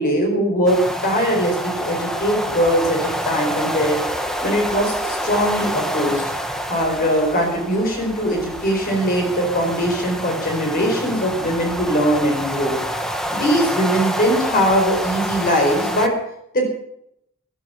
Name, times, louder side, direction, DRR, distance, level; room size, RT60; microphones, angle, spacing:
voice 1, 0.0-4.0 4.4-6.2 6.7-12.8 13.3-16.1 16.5-16.6, equal, 45° left, 2 dB, 4.7 m, -20 dB
sound 1, 0.7-16.1, equal, ahead, 1.3 m, -27 dB
16.0 x 13.0 x 5.8 m, 0.76 s
head